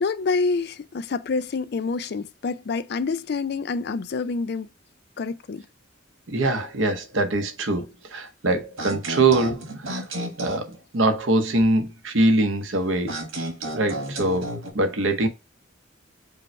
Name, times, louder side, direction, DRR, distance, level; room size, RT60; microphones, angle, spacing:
voice 1, 0.0-4.7 5.2-5.7, left 4 dB, 50° left, 0.3 m, -27 dB
voice 2, 6.3-10.0 10.4-13.2 13.7-15.3, right 2 dB, 70° right, 0.8 m, -23 dB
sound 1, 8.8-10.7 13.0-14.7, right 1 dB, 85° right, 1.4 m, -32 dB
5.2 x 2.1 x 4.3 m
head